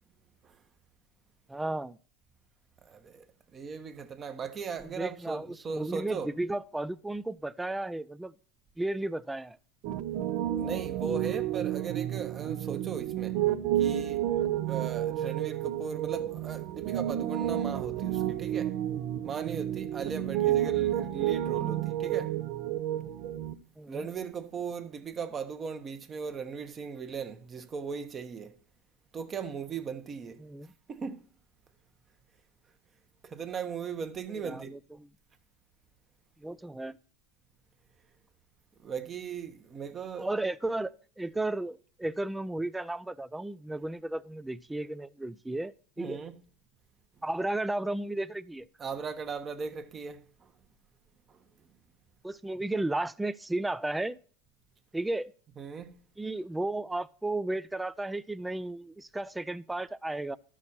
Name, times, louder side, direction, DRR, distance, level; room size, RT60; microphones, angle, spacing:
voice 1, 1.5-2.0 5.0-8.3 8.8-9.6 20.4-20.7 23.8-24.1 30.4-30.7 34.4-35.1 36.4-37.0 40.2-46.2 47.2-48.7 52.2-54.2 54.9-55.3 56.2-60.4, right 2 dB, 5° right, 0.4 m, -34 dB
voice 2, 2.8-3.3 3.5-6.3 10.6-13.4 13.8-14.3 14.7-18.8 19.2-22.4 23.9-28.6 29.1-30.4 30.9-31.2 33.2-34.8 38.8-40.3 46.0-46.4 48.8-50.5 51.3-51.4 55.6-56.0, right 6 dB, 30° right, 1.0 m, -38 dB
Piano, 9.8-23.5, right 12 dB, 55° right, 0.7 m, -30 dB
12.5 x 6.2 x 4.3 m
supercardioid pair, 120°, 0 cm